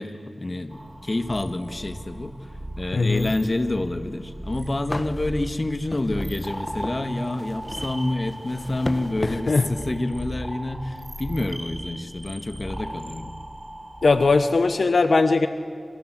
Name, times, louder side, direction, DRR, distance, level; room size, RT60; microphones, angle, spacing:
voice 1, 0.0-2.3 2.8-13.3, left 2 dB, 40° left, 9 dB, 2.0 m, -28 dB
sound 1, 0.7-14.5, right 1 dB, 15° right, 2.9 m, -37 dB
voice 2, 2.9-3.3 9.2-9.6 14.0-15.5, left 3 dB, 75° left, 9 dB, 1.2 m, -19 dB
sound 2, 4.3-4.4 4.9-9.9, left 1 dB, 25° left, 1.7 m, -36 dB
27.0 x 26.5 x 7.9 m, 2.2 s
wide cardioid pair, 60°, 0 cm